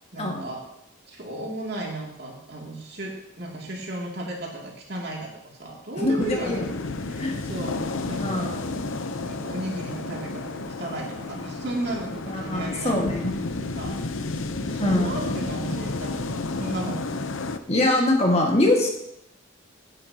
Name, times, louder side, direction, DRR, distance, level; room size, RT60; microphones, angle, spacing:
voice 1, 0.1-0.6 1.1-6.6 7.1-8.6 9.2-13.0 13.8-14.0 14.7-17.1, right 1 dB, 55° right, -2 dB, 2.6 m, -35 dB
voice 2, 6.0-6.7 7.2-7.4 8.2-8.6 12.3-13.4 14.8-15.2 17.7-18.9, left 1 dB, 30° left, 0 dB, 1.8 m, -23 dB
sound 1, 6.2-17.6, left 2 dB, 90° left, 0.7 m, -31 dB
15.5 x 9.7 x 2.9 m, 0.82 s
head